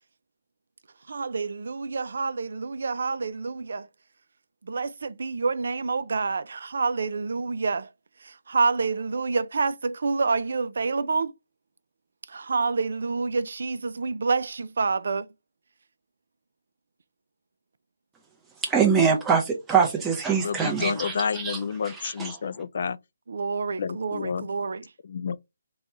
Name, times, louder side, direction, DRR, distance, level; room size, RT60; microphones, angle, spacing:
voice 1, 1.1-3.9 4.6-7.9 8.2-11.3 12.3-15.3 23.3-24.8, right 4 dB, 65° right, 0.4 m, -28 dB
voice 2, 18.6-21.6 21.8-22.4, right 6 dB, 5° right, 0.6 m, -24 dB
voice 3, 20.4-23.0 23.8-24.5 25.0-25.4, left 6 dB, 50° left, 0.3 m, -30 dB
4.1 x 2.3 x 3.0 m
hypercardioid pair, 165°, 0 cm